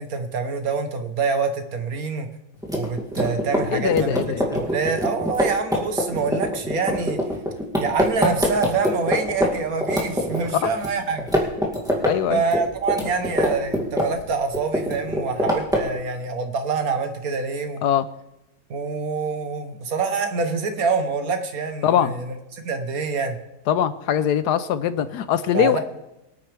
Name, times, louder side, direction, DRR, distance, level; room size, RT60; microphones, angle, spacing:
voice 1, 0.0-2.3 2.7-4.2 4.5-7.2 7.8-11.3 12.3-17.8 18.7-23.4 25.5-25.8, right 4 dB, 60° right, 7 dB, 1.5 m, -26 dB
sound 1, 2.6-9.5 9.8-10.9 11.2-12.1 12.4-14.3 14.5-16.0, equal, ahead, 2.2 m, -23 dB
voice 2, 3.7-4.6 10.6-10.7 12.0-12.4 17.8-18.1 21.8-22.1 23.7-25.8, left 9 dB, 75° left, 13 dB, 1.2 m, -22 dB
23.5 x 9.3 x 3.4 m, 0.92 s
omnidirectional pair, 1.8 m